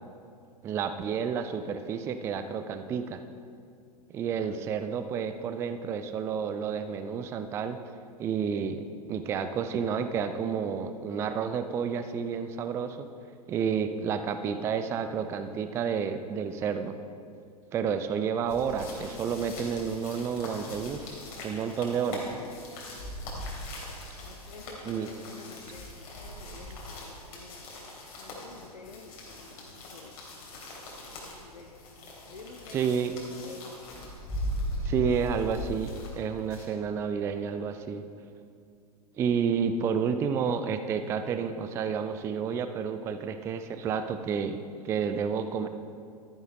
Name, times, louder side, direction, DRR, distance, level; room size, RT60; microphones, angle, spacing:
voice 1, 0.6-3.2 4.1-7.8 8.2-8.8 9.1-13.1 13.5-16.9 17.7-21.1 21.4-22.3 24.9-25.1 32.7-33.1 34.8-38.0 39.2-45.7, right 6 dB, 15° right, 9 dB, 0.4 m, -30 dB
sound 1, 18.5-36.7, left 1 dB, 35° left, 3.1 m, -40 dB
voice 2, 24.2-27.7 28.0-30.1 31.3-31.8 32.3-34.0 35.1-35.4, left 3 dB, 75° left, 2 dB, 0.9 m, -50 dB
12.5 x 10.5 x 3.9 m, 2.4 s
figure-of-eight pair, 100°, 21 cm